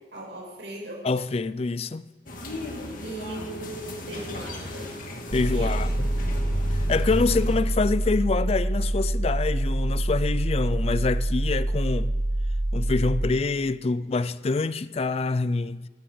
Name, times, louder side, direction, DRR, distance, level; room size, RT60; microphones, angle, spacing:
voice 1, 0.1-1.0 3.0-4.9 5.5-5.8, right 1 dB, 85° right, 6.2 m, -38 dB
voice 2, 1.0-2.0 5.3-6.1 6.7-12.1 12.7-15.9, left 3 dB, 35° left, 0.4 m, -26 dB
sound 1, 2.3-7.6, left 1 dB, 50° left, 2.0 m, -35 dB
sound 2, 5.3-13.3, right 1 dB, 40° right, 0.7 m, -26 dB
15.5 x 14.5 x 5.1 m
head